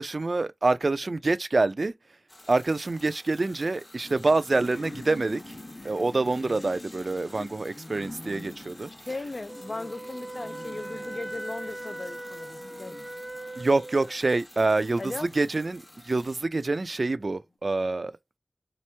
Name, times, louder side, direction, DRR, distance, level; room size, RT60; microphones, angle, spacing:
voice 1, 0.0-1.9 2.5-5.6 5.8-8.9 13.6-18.1, right 3 dB, 60° right, 0.3 m, -26 dB
sound 1, 2.3-16.4, left 1 dB, 35° left, 0.9 m, -52 dB
sound 2, 4.0-16.4, left 2 dB, 75° left, 1.0 m, -46 dB
voice 2, 9.0-13.0 15.0-15.3, left 2 dB, 60° left, 0.4 m, -37 dB
Wind instrument woodwind instrument, 9.5-14.2, right 1 dB, 10° right, 0.6 m, -40 dB
3.4 x 3.0 x 3.2 m
wide cardioid pair, 55°, 0 cm